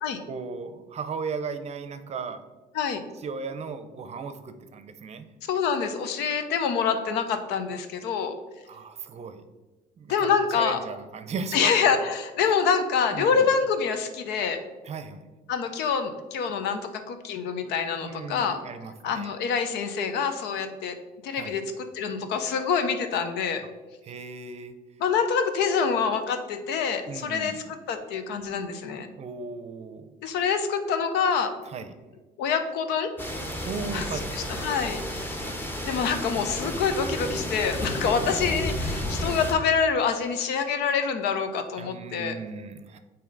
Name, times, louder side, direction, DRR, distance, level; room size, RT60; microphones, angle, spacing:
voice 1, 0.3-2.4 3.2-5.3 8.7-9.4 10.0-12.0 13.1-13.5 14.8-15.3 18.0-19.3 21.3-21.6 24.0-24.7 27.1-27.6 29.2-30.1 31.7-31.9 33.6-34.7 38.0-38.4 41.8-43.0, right 5 dB, 40° right, 10 dB, 0.6 m, -36 dB
voice 2, 5.5-8.3 10.1-10.8 11.5-14.6 15.5-18.6 19.0-20.9 21.2-23.6 25.0-29.1 30.2-31.6 32.4-33.1 33.9-34.1 34.3-35.3 35.9-42.4, left 6 dB, 85° left, 8 dB, 0.7 m, -26 dB
sound 1, 33.2-39.5, left 1 dB, 10° left, 0.8 m, -32 dB
8.5 x 2.9 x 3.8 m, 1.2 s
cardioid pair, 110°, 17 cm